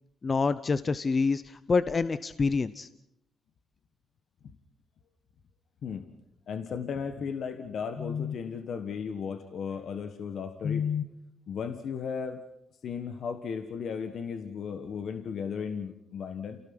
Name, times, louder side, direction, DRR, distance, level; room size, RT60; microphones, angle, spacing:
voice 1, 0.2-2.9, left 4 dB, 40° left, 14 dB, 0.8 m, -27 dB
voice 2, 6.5-11.1 11.5-12.4 12.8-16.6, left 6 dB, 70° left, 8 dB, 1.6 m, -34 dB
29.0 x 18.0 x 6.1 m, 0.79 s
cardioid pair, 75°, 0 cm